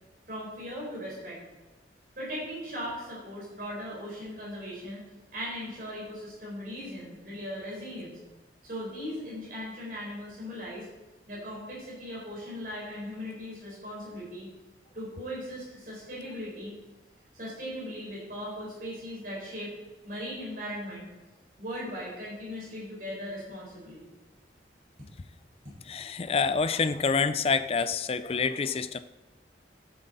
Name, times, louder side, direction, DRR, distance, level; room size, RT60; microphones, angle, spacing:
voice 1, 0.3-1.4 2.2-5.0 5.3-8.2 8.6-10.9 11.3-14.5 14.9-16.7 17.3-19.7 20.0-21.0 21.6-24.0, equal, 50° right, -5 dB, 4.2 m, -38 dB
voice 2, 25.9-29.0, left 5 dB, 35° left, 12 dB, 0.4 m, -27 dB
13.5 x 7.9 x 4.1 m, 1.1 s
head